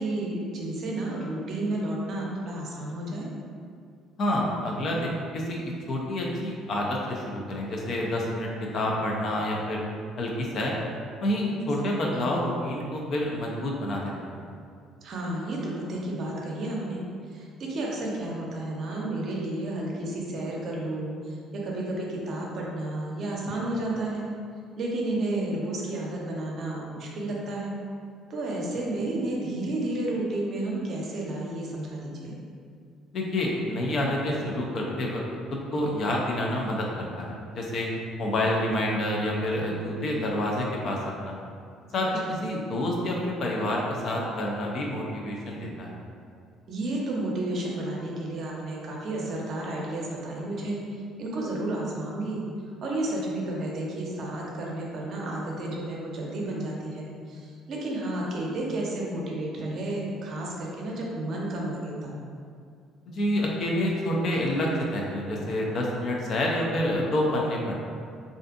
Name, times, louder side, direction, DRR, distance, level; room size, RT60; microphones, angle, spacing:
voice 1, 0.0-3.3 11.8-12.3 15.0-17.0 17.3-24.3 24.8-27.7 28.3-32.3 41.9-42.4 46.7-52.4 52.8-62.1, right 1 dB, 55° right, -3 dB, 0.6 m, -32 dB
voice 2, 4.2-8.5 8.7-9.8 10.2-10.7 11.2-14.4 33.1-35.2 35.5-37.9 38.2-41.3 41.9-45.9 63.1-67.7, left 1 dB, 55° left, -2 dB, 0.5 m, -28 dB
2.5 x 2.5 x 2.5 m, 2.3 s
supercardioid pair, 70°, 0 cm